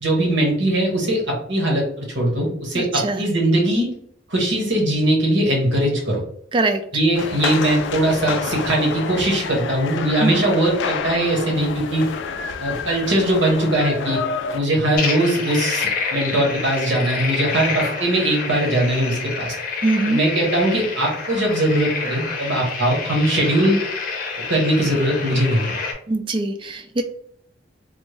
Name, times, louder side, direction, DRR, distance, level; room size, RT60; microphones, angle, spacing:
voice 1, 0.0-3.9 4.3-6.2 6.9-12.1 12.6-14.2 14.5-19.6 20.0-23.8 24.4-25.7, right 1 dB, 75° right, -1 dB, 1.2 m, -20 dB
voice 2, 2.7-3.2 6.5-6.8 10.2-10.5 19.8-20.2 26.1-27.0, right 2 dB, 25° right, 7 dB, 0.3 m, -22 dB
sound 1, 7.1-14.6, left 5 dB, 75° left, 0.4 m, -28 dB
sound 2, 14.9-25.9, left 4 dB, 50° left, 0.7 m, -28 dB
3.4 x 2.0 x 3.2 m, 0.65 s
head